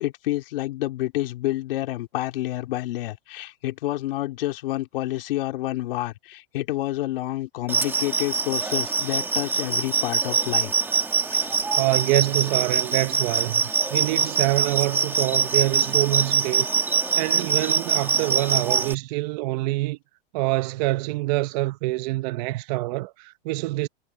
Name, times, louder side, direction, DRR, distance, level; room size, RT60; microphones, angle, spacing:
voice 1, 0.0-10.8 11.3-11.5, left 16 dB, 65° left, 3.2 m, -29 dB
sound 1, 7.7-18.9, right 5 dB, 5° right, 1.2 m, -24 dB
voice 2, 11.8-13.6 13.9-16.7 17.2-20.0 20.3-23.9, right 20 dB, 45° right, 0.9 m, -25 dB
supercardioid pair, 150°, 30 cm